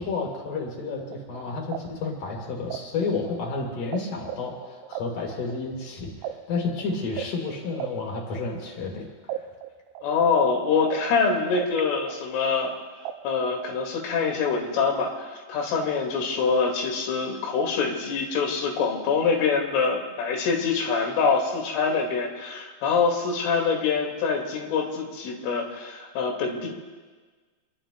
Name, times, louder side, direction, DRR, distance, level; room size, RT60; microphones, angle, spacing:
voice 1, 0.0-9.4, left 4 dB, 45° left, 0 dB, 4.3 m, -31 dB
sound 1, 1.0-4.0 4.2-8.9 9.3-11.8 12.1-13.7, right 11 dB, 85° right, 3.0 m, -36 dB
voice 2, 10.0-12.7 13.2-26.7, left 5 dB, 90° left, 1 dB, 4.5 m, -25 dB
27.5 x 23.0 x 2.2 m, 1.4 s
omnidirectional pair, 5.5 m